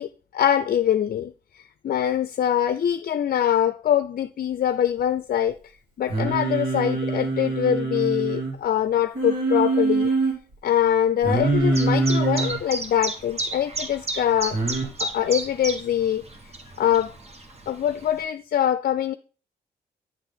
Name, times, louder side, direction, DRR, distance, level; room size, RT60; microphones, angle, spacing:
voice 1, 0.0-5.7 6.0-10.1 10.6-14.6 15.0-16.2 16.8-17.1 17.7-19.1, left 10 dB, 55° left, 0.5 m, -23 dB
Singing, 6.1-8.5 9.2-10.3 11.2-12.6 14.5-14.8, right 3 dB, 70° right, 3.1 m, -24 dB
Chirp tweet, 11.7-18.2, right 2 dB, 35° right, 1.7 m, -33 dB
9.6 x 3.6 x 5.7 m
cardioid pair, 70°, 18 cm